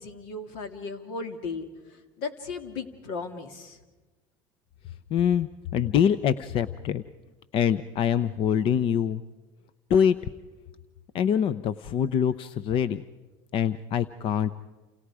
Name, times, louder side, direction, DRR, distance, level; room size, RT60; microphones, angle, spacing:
voice 1, 0.0-3.8, left 4 dB, 85° left, 7 dB, 2.6 m, -36 dB
voice 2, 5.1-7.0 7.5-9.2 9.9-10.2 11.1-13.0 13.5-14.5, left 8 dB, 50° left, 15 dB, 0.7 m, -24 dB
29.0 x 29.0 x 4.9 m, 1.2 s
supercardioid pair, 105°, 11 cm